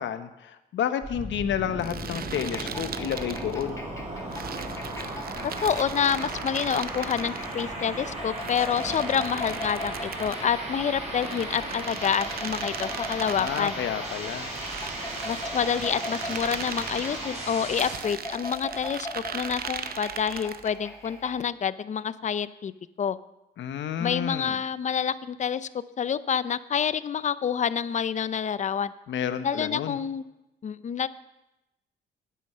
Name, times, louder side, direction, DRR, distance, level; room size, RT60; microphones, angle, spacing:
voice 1, 0.0-3.8 13.2-14.5 23.6-24.6 29.1-30.0, left 9 dB, 70° left, 11 dB, 1.0 m, -30 dB
sound 1, 1.0-18.0, right 1 dB, 30° right, 5.0 m, -36 dB
sound 2, 1.8-3.7 4.3-7.6 8.4-10.5 11.1-13.8 14.4-17.2 17.8-20.7, right 7 dB, 50° right, 0.8 m, -39 dB
sound 3, 2.2-21.5, left 2 dB, 15° left, 1.9 m, -41 dB
voice 2, 5.6-13.8 15.2-22.7 23.0-23.2 24.0-25.7 26.0-28.9 29.4-30.2 30.6-31.1, left 7 dB, 35° left, 16 dB, 0.5 m, -28 dB
9.4 x 9.4 x 6.8 m, 0.94 s
cardioid pair, 90°, 20 cm